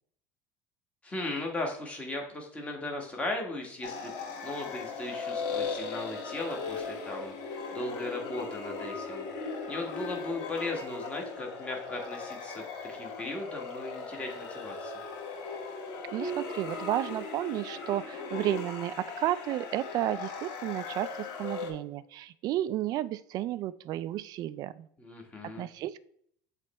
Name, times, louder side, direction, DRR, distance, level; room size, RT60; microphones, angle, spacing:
voice 1, 1.0-4.1 4.4-7.3 7.7-14.9 25.0-25.6, left 2 dB, 15° left, 1 dB, 1.5 m, -37 dB
sound 1, 3.8-21.7, left 4 dB, 65° left, 1.9 m, -38 dB
voice 2, 16.1-24.9 25.6-26.0, right 13 dB, 45° right, 15 dB, 0.3 m, -32 dB
7.6 x 3.3 x 4.2 m, 0.66 s
cardioid pair, 150°, 9 cm